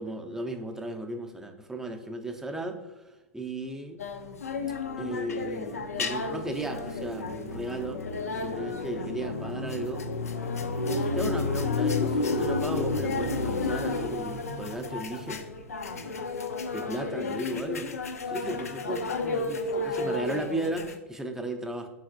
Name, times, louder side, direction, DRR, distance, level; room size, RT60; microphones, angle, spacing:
voice 1, 0.0-4.0 5.0-8.0 8.4-10.0 10.9-15.4 16.7-17.9 18.3-21.9, right 1 dB, 5° right, 4 dB, 0.5 m, -35 dB
sound 1, 4.0-21.0, left 3 dB, 85° left, 0.4 m, -31 dB
4.3 x 4.0 x 2.5 m, 1.1 s
hypercardioid pair, 95°, 8 cm